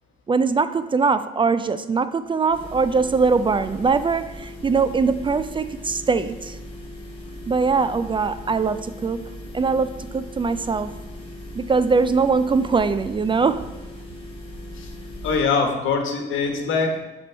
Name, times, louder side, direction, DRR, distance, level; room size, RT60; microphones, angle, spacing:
voice 1, 0.3-6.6 7.5-9.2 9.5-10.9 11.6-13.7, right 4 dB, 25° right, 13 dB, 0.3 m, -22 dB
sound 1, 2.5-15.4, left 1 dB, 25° left, 2.3 m, -38 dB
voice 2, 15.2-17.1, left 4 dB, 80° left, 4 dB, 1.2 m, -23 dB
7.4 x 4.4 x 4.5 m, 1.2 s
cardioid pair, 90°, 20 cm